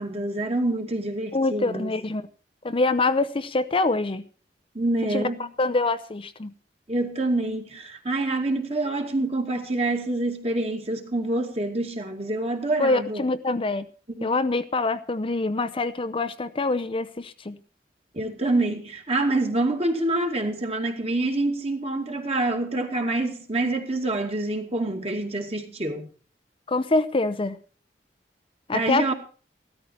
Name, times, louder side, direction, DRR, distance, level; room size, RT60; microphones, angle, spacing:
voice 1, 0.0-1.9 4.7-5.5 6.9-13.2 14.2-14.4 18.1-26.1 28.7-29.1, right 2 dB, 35° right, 2.4 m, -26 dB
voice 2, 1.3-2.2 2.6-4.2 5.1-5.2 5.6-6.5 12.8-13.8 14.2-17.6 26.7-27.6 28.7-29.1, left 2 dB, 30° left, 0.7 m, -25 dB
15.5 x 13.5 x 4.4 m
head